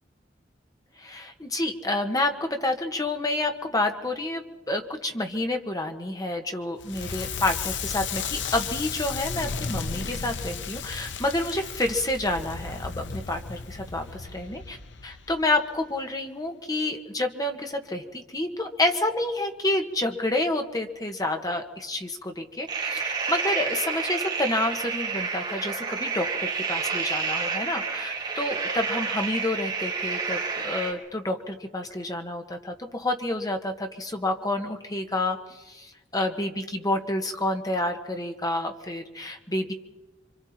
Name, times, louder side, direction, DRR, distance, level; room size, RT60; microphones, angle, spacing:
voice 1, 1.0-14.8 15.0-39.7, left 2 dB, 20° left, 4 dB, 1.6 m, -29 dB
Crackle, 6.8-15.8, left 5 dB, 75° left, 0.9 m, -34 dB
sound 1, 22.7-30.9, right 5 dB, 25° right, 3.6 m, -29 dB
28.5 x 25.0 x 4.4 m, 1.1 s
head